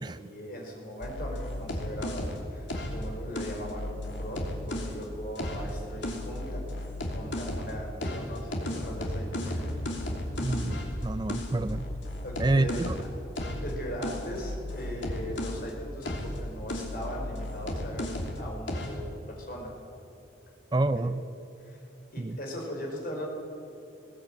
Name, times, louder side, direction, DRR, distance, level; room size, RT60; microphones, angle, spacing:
voice 1, 0.0-9.7 12.2-12.9 13.6-19.7 20.9-21.1 21.6-21.8 22.1-23.3, equal, 50° left, -1 dB, 5.1 m, -39 dB
sound 1, 1.0-5.0 5.4-7.7 8.0-15.7 16.0-18.4 18.7-19.0, left 1 dB, 70° left, 3.0 m, -34 dB
voice 2, 10.4-11.9 12.4-12.9 20.7-21.2 22.2-22.4, right 2 dB, 20° right, 12 dB, 0.4 m, -28 dB
20.0 x 16.0 x 8.9 m, 2.9 s
head